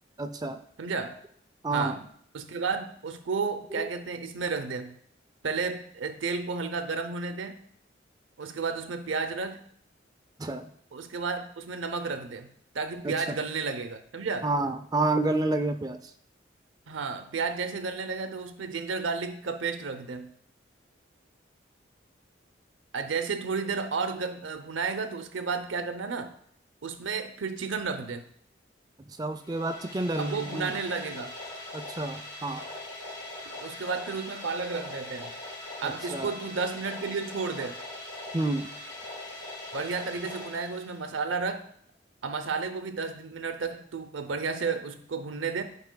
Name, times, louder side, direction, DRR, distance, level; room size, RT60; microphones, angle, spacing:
voice 1, 0.2-0.6 1.6-2.0 3.7-3.9 10.4-10.7 13.0-13.4 14.4-16.0 29.0-30.8 31.7-32.6 35.8-36.4 38.3-38.7, right 2 dB, 20° right, 9 dB, 0.3 m, -29 dB
voice 2, 0.8-1.1 1.7-2.0 2.3-4.9 5.4-7.7 8.4-9.7 10.9-12.5 12.7-14.5 16.9-20.3 22.9-26.3 26.8-28.3 30.2-31.3 33.5-35.3 35.8-37.8 39.7-41.6 42.2-45.6, right 4 dB, 90° right, 8 dB, 0.6 m, -32 dB
sound 1, 29.4-41.3, left 2 dB, 20° left, 1.5 m, -41 dB
13.0 x 5.5 x 2.2 m, 0.64 s
head